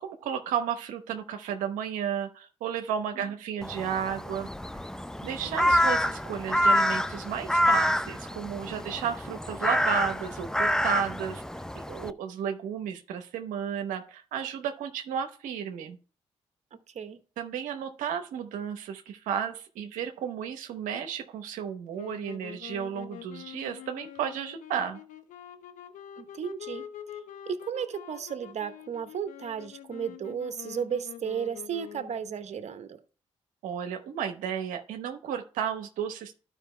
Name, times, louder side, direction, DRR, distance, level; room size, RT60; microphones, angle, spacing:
voice 1, 0.0-4.5 5.2-16.0 17.4-25.0 33.6-36.3, right 8 dB, 85° right, 6 dB, 0.8 m, -33 dB
Crow, 3.6-12.1, equal, 5° left, 0.5 m, -27 dB
voice 2, 16.7-17.2 26.2-26.9 27.5-33.0, right 7 dB, 60° right, 10 dB, 0.9 m, -34 dB
sound 1, 21.9-32.3, left 10 dB, 80° left, 0.9 m, -45 dB
12.0 x 5.1 x 3.2 m, 0.37 s
supercardioid pair, 45°, 13 cm